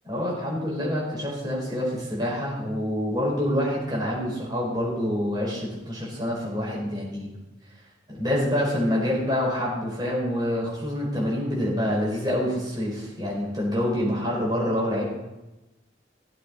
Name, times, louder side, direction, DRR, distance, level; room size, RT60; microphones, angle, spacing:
voice 1, 0.0-7.3 8.1-15.1, equal, 20° right, -4 dB, 4.8 m, -26 dB
16.5 x 8.8 x 4.4 m, 1.0 s
head